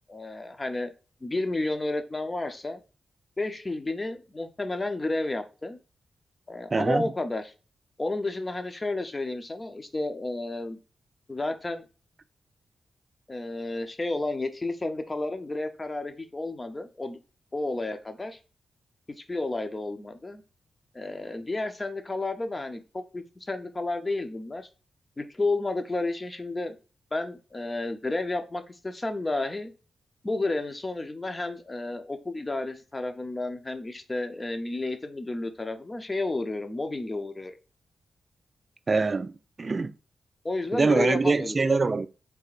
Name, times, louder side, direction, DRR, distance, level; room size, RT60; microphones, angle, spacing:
voice 1, 0.1-0.9 1.2-2.8 3.4-5.8 6.5-7.5 8.0-10.8 11.3-11.9 13.3-17.2 17.5-18.4 19.3-20.4 20.9-24.7 25.2-26.8 27.1-29.7 30.2-37.6 40.4-41.8, left 2 dB, 30° left, 0.7 m, -31 dB
voice 2, 6.7-7.0 38.9-39.3 39.6-39.9 40.7-42.1, right 3 dB, 45° right, 0.3 m, -24 dB
3.5 x 3.1 x 2.5 m
cardioid pair, 50°, 0 cm